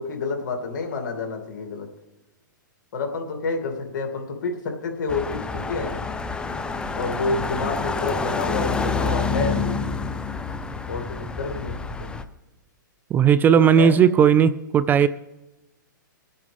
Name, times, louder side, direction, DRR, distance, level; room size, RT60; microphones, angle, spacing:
voice 1, 0.0-1.9 2.9-5.9 6.9-9.9 10.9-11.7 12.0-12.1 13.7-13.9, left 4 dB, 65° left, 3 dB, 2.7 m, -29 dB
sound 1, 5.1-12.2, left 4 dB, 10° left, 0.7 m, -28 dB
voice 2, 13.1-15.1, right 8 dB, 15° right, 16 dB, 0.3 m, -16 dB
22.5 x 8.5 x 3.5 m, 0.96 s
hypercardioid pair, 130°, 11 cm